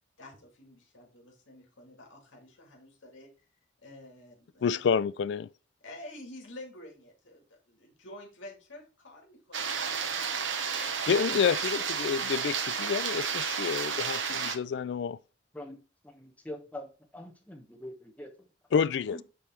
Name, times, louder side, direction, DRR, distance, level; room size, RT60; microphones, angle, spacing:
voice 1, 0.2-3.3 3.8-5.0 5.8-10.9 11.7-11.8 19.1-19.2, left 1 dB, 80° left, 2.2 m, -49 dB
voice 2, 4.6-5.5 10.7-15.2 18.7-19.2, left 6 dB, 65° left, 0.3 m, -29 dB
sound 1, 9.5-14.6, right 6 dB, 70° right, 0.9 m, -32 dB
voice 3, 15.5-18.5, left 1 dB, 10° left, 1.0 m, -44 dB
8.5 x 3.3 x 4.4 m
head